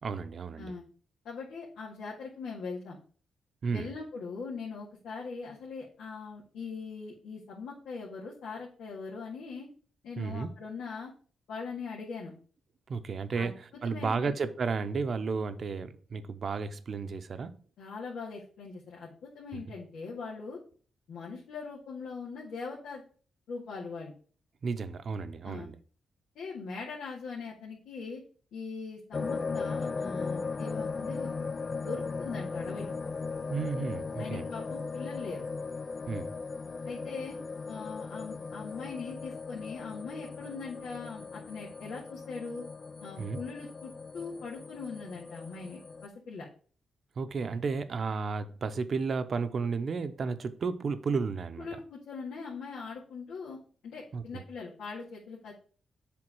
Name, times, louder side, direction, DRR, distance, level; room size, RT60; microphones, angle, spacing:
voice 1, 0.0-0.7 3.6-3.9 10.2-10.5 12.9-17.5 19.5-19.6 24.6-25.8 33.5-34.5 36.1-36.3 43.2-43.4 47.2-51.7 54.1-54.4, right 5 dB, 50° right, 0.7 m, -33 dB
voice 2, 1.2-3.0 3.7-9.7 10.0-11.1 11.5-12.3 13.4-13.5 13.8-14.4 17.8-20.6 21.1-23.0 23.5-24.1 25.4-25.7 26.4-28.2 28.5-31.3 31.7-32.9 34.2-35.4 36.9-37.4 37.7-42.6 43.0-46.5 51.6-53.6 53.8-55.5, left 4 dB, 90° left, 1.8 m, -41 dB
sound 1, 29.1-46.1, left 4 dB, 40° left, 0.3 m, -38 dB
7.7 x 3.5 x 6.0 m
cardioid pair, 90°, 0 cm